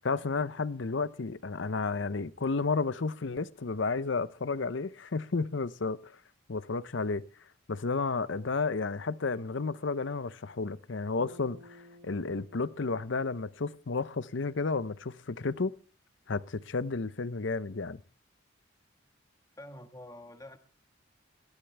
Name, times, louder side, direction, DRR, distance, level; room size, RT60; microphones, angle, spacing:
voice 1, 0.0-6.2 6.5-7.2 7.7-15.7 16.3-18.0, left 4 dB, 65° left, 0.7 m, -32 dB
sound 1, 11.2-14.5, left 1 dB, 70° right, 2.4 m, -56 dB
voice 2, 19.6-20.6, left 1 dB, 15° left, 1.5 m, -47 dB
20.0 x 13.5 x 3.3 m
head